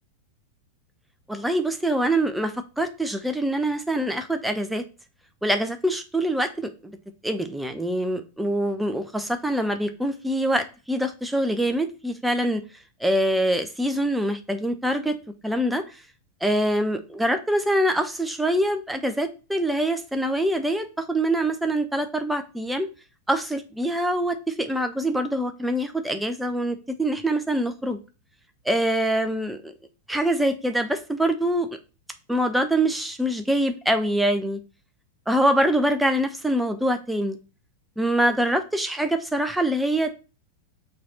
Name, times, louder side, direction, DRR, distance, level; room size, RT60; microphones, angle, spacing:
voice 1, 1.3-4.8 5.4-7.0 7.2-12.6 13.0-15.2 15.4-15.8 16.4-22.9 23.3-28.0 28.6-29.7 30.1-31.8 32.3-34.6 35.3-37.4 38.0-40.1, right 1 dB, 5° right, 7 dB, 0.9 m, -24 dB
6.0 x 4.2 x 4.4 m, 0.33 s
figure-of-eight pair, 90°, 0 cm